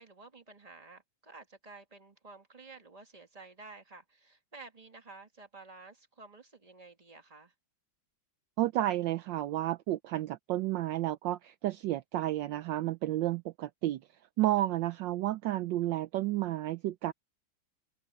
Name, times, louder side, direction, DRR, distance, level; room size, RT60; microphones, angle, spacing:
voice 1, 0.0-7.5 14.6-14.8, right 3 dB, 20° right, 2.2 m, -52 dB
voice 2, 8.6-14.0 14.4-17.1, right 14 dB, 75° right, 1.2 m, -31 dB
omnidirectional pair, 2.2 m